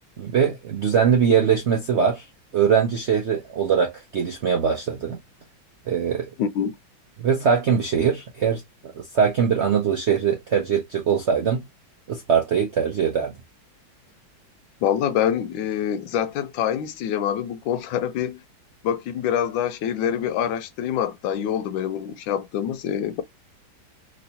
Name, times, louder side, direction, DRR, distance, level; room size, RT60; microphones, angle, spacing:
voice 1, 0.2-2.3 2.5-5.2 5.9-6.3 7.2-8.6 8.9-11.6 12.1-13.3, right 7 dB, 75° right, 0.6 m, -22 dB
voice 2, 6.4-6.8 14.8-18.4 18.8-23.2, left 9 dB, 80° left, 1.3 m, -25 dB
3.2 x 3.0 x 2.7 m
omnidirectional pair, 2.2 m